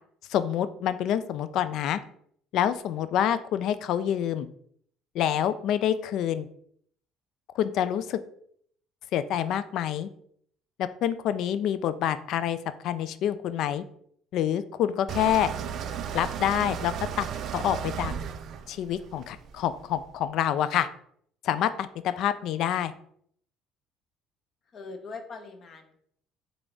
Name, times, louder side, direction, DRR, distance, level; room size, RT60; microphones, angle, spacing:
voice 1, 0.3-2.0 2.5-4.5 5.1-6.5 7.6-8.2 9.1-10.1 10.8-12.6 12.8-13.8 14.3-15.5 16.1-17.3 17.5-18.1 18.7-20.9 21.4-22.9, left 10 dB, 70° left, 13 dB, 0.3 m, -27 dB
Car turning off, 15.1-20.0, right 8 dB, 55° right, 0.4 m, -35 dB
voice 2, 24.7-26.0, left 4 dB, 50° left, 7 dB, 0.7 m, -41 dB
3.8 x 3.3 x 3.6 m, 0.65 s
supercardioid pair, 95°, 0 cm